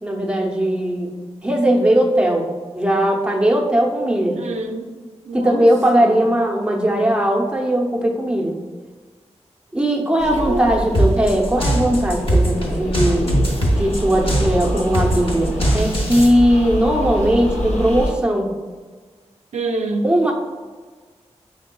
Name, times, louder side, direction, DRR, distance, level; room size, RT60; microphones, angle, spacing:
voice 1, 0.0-2.5 2.7-4.4 5.3-8.6 9.7-13.3 13.8-18.5 20.0-20.3, right 1 dB, 10° right, -1 dB, 0.7 m, -18 dB
voice 2, 4.4-4.9 5.3-5.7 6.0-6.2 10.3-11.0 19.5-20.1, right 2 dB, 75° right, 3 dB, 0.4 m, -26 dB
sound 1, 10.2-18.1, equal, 75° left, 0.7 m, -26 dB
sound 2, 10.9-16.3, right 1 dB, 50° left, 0.9 m, -20 dB
5.4 x 3.4 x 2.2 m, 1.4 s
wide cardioid pair, 75°, 12 cm